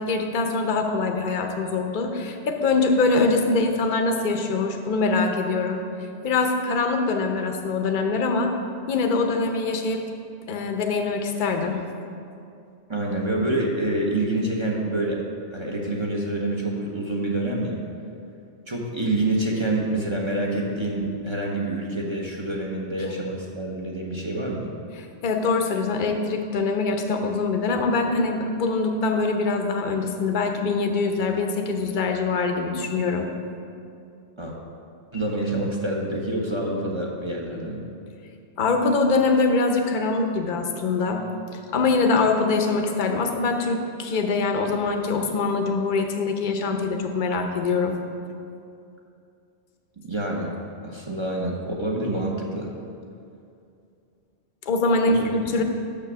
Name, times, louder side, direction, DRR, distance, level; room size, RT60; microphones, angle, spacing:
voice 1, 0.0-5.8 6.2-8.5 8.9-10.0 10.5-11.8 25.0-33.3 38.6-41.2 41.7-48.0 54.7-55.6, left 3 dB, 50° left, 4 dB, 0.8 m, -23 dB
voice 2, 12.9-15.2 15.5-17.8 18.7-24.7 34.4-34.5 35.1-37.8 50.0-50.5 50.8-52.7 55.1-55.2, right 2 dB, 25° right, -2 dB, 0.9 m, -27 dB
6.8 x 6.3 x 6.1 m, 2.5 s
omnidirectional pair, 1.2 m